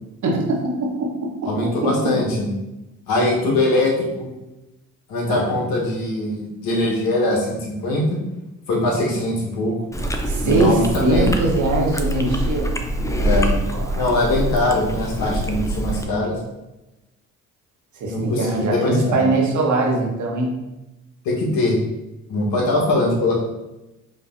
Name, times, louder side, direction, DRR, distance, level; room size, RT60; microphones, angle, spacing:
voice 1, 0.2-2.1 5.3-5.5 10.3-12.7 13.7-14.2 17.9-20.6, right 2 dB, 55° right, -1 dB, 1.2 m, -22 dB
voice 2, 1.5-2.5 3.1-4.3 5.1-8.2 8.7-9.7 10.4-11.3 13.2-13.5 13.9-16.3 18.1-19.2 21.2-21.8 22.3-23.4, left 2 dB, 75° left, -3 dB, 1.4 m, -21 dB
Chewing mastication, 9.9-16.0, right 1 dB, 10° left, 0.5 m, -24 dB
5.1 x 3.0 x 2.6 m, 0.98 s
hypercardioid pair, 55°, 36 cm